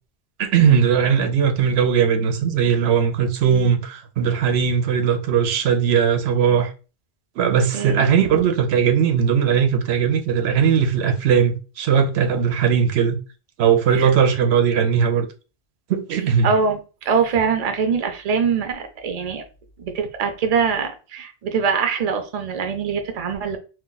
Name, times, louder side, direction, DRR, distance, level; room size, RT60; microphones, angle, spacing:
voice 1, 0.4-6.7 7.4-13.2 13.6-15.3 15.9-16.5, right 7 dB, 85° right, 0.8 m, -19 dB
voice 2, 16.4-19.4 19.8-23.6, right 6 dB, 45° right, 0.6 m, -23 dB
2.4 x 2.3 x 3.8 m
omnidirectional pair, 1.1 m